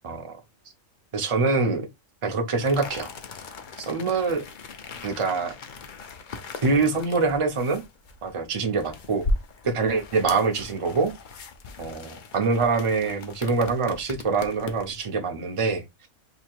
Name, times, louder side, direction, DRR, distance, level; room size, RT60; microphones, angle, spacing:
voice 1, 1.1-1.9 2.2-3.1 3.8-4.4 5.0-5.5 6.6-7.8 8.2-9.3 9.6-11.1 11.8-16.1, right 4 dB, 30° right, 0.6 m, -25 dB
sound 1, 2.6-15.0, left 2 dB, 50° left, 0.6 m, -37 dB
2.9 x 2.7 x 4.4 m
omnidirectional pair, 1.4 m